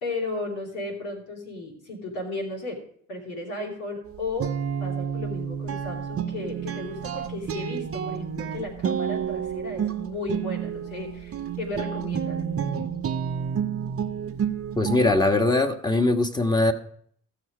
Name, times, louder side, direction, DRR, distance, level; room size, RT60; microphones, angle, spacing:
voice 1, 0.0-2.8 3.1-4.5 4.8-12.4, left 2 dB, 85° left, 0 dB, 3.0 m, -34 dB
Guitar, 4.1-15.3, right 8 dB, 40° right, 0.8 m, -30 dB
voice 2, 14.8-16.7, left 2 dB, 10° left, 5 dB, 1.4 m, -21 dB
15.0 x 6.5 x 4.9 m, 0.62 s
hypercardioid pair, 55°, 35 cm